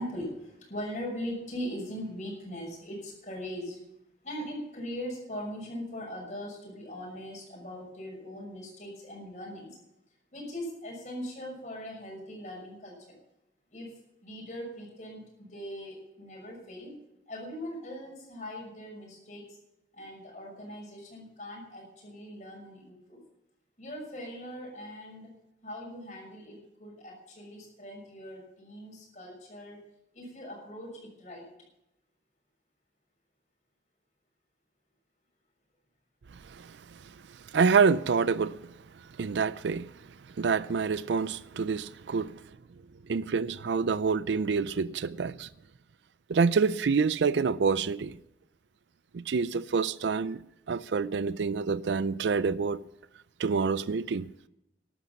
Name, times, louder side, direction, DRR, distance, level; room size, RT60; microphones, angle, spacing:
voice 1, 0.0-3.8 4.2-9.8 10.3-13.2 13.7-16.9 17.3-19.6 19.9-23.2 23.8-25.3 25.6-29.8 30.1-31.5, equal, 40° left, 6.2 m, -40 dB
voice 2, 37.5-38.6 39.2-39.9 40.4-42.3 43.1-45.5 46.3-48.1 49.1-50.4 50.7-52.8 53.4-54.2, right 5 dB, 85° right, 0.4 m, -27 dB
13.5 x 12.0 x 6.0 m
head